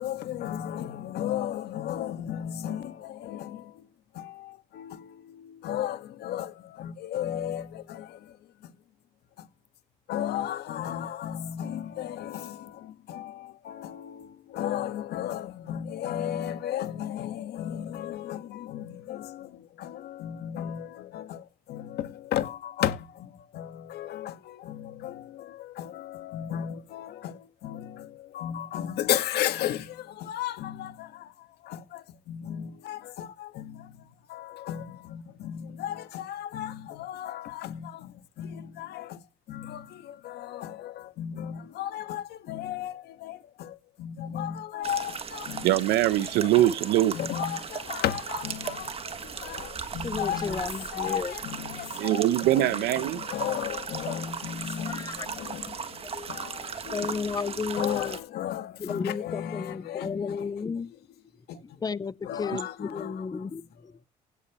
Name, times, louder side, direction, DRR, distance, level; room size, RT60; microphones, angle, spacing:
voice 1, 0.0-3.9 4.1-8.4 8.6-8.7 9.4-9.5 10.1-39.2 39.5-45.8 46.4-46.7 47.1-60.5 61.5-61.8 62.2-63.5, left 11 dB, 75° left, 1.6 m, -35 dB
sound 1, 44.8-58.2, right 6 dB, 35° right, 1.5 m, -37 dB
voice 2, 45.6-47.2 51.9-53.2, right 14 dB, 90° right, 0.7 m, -23 dB
voice 3, 50.0-51.4 54.8-55.3 55.7-55.8 56.1-56.3 56.9-58.2 58.8-60.9 61.6-64.0, left 5 dB, 25° left, 0.5 m, -33 dB
16.5 x 8.3 x 3.1 m
cardioid pair, 110°, 17 cm